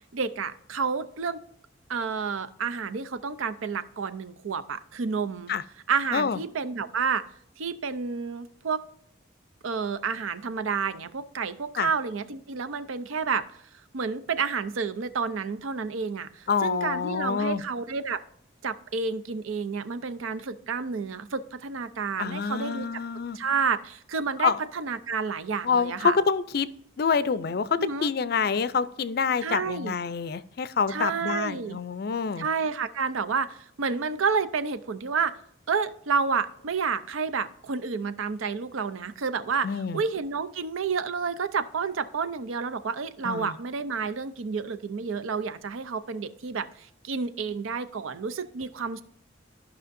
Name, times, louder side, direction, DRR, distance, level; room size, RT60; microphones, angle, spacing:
voice 1, 0.1-1.4 1.9-5.5 5.9-7.2 7.6-8.8 9.6-13.5 13.9-18.2 18.6-22.9 23.3-26.2 27.8-28.1 29.4-29.9 30.9-31.8 32.4-35.3 35.7-49.0, right 5 dB, 85° right, 0.6 m, -30 dB
voice 2, 16.5-17.6 22.2-23.4 24.4-24.6 25.6-26.7 27.0-32.5 39.6-40.0 43.2-43.5, left 5 dB, 50° left, 0.4 m, -27 dB
13.5 x 5.6 x 2.6 m
head